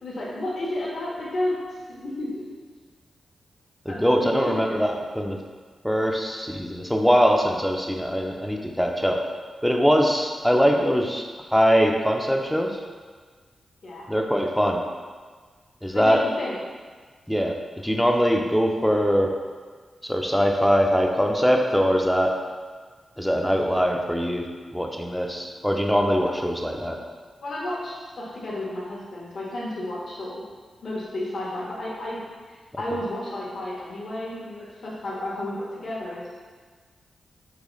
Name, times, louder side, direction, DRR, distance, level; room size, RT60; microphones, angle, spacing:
voice 1, 0.0-1.6 1.9-2.4 3.9-4.8 13.8-14.1 15.9-16.5 26.2-26.6 27.4-30.4 30.8-32.2 32.5-36.4, left 1 dB, 65° left, -5 dB, 1.0 m, -32 dB
voice 2, 3.8-5.4 5.8-9.2 9.6-11.2 11.5-12.8 14.1-14.8 15.8-16.2 17.3-17.6 17.8-19.3 20.0-22.4 23.2-24.5 24.7-27.0, equal, ahead, 1 dB, 0.5 m, -22 dB
3.9 x 3.0 x 3.1 m, 1.5 s
cardioid pair, 55°, 0 cm